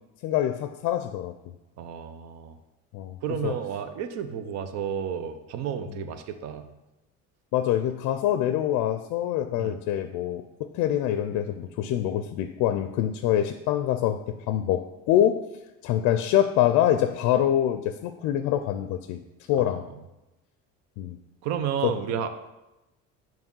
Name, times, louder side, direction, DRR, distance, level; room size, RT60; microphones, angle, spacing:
voice 1, 0.2-1.3 2.9-3.1 3.4-3.5 7.5-15.5 15.8-19.2 19.5-19.9 21.0-21.2 21.8-21.9, left 11 dB, 75° left, 9 dB, 0.4 m, -25 dB
voice 2, 1.8-2.6 3.2-6.7 9.6-9.8 19.6-19.8 21.4-22.3, right 8 dB, 65° right, 9 dB, 0.6 m, -32 dB
7.1 x 3.1 x 5.3 m, 0.99 s
cardioid pair, 155°, 29 cm